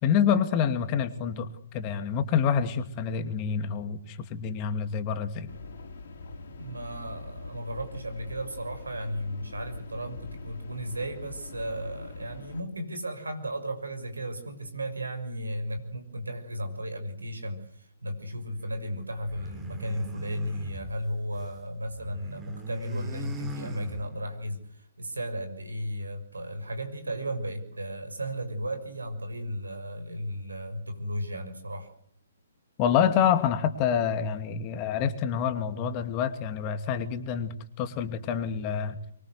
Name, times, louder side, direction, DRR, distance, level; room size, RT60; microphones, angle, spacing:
voice 1, 0.0-5.5 32.8-39.0, left 8 dB, 30° left, 9 dB, 2.5 m, -27 dB
sound 1, 5.5-12.6, left 3 dB, 55° left, 3.7 m, -43 dB
voice 2, 6.6-31.9, equal, 80° right, 9 dB, 6.4 m, -35 dB
sound 2, 19.2-21.6 21.9-24.4, right 2 dB, 15° right, 3.9 m, -41 dB
25.0 x 23.0 x 8.1 m, 0.67 s
figure-of-eight pair, 125°, 0 cm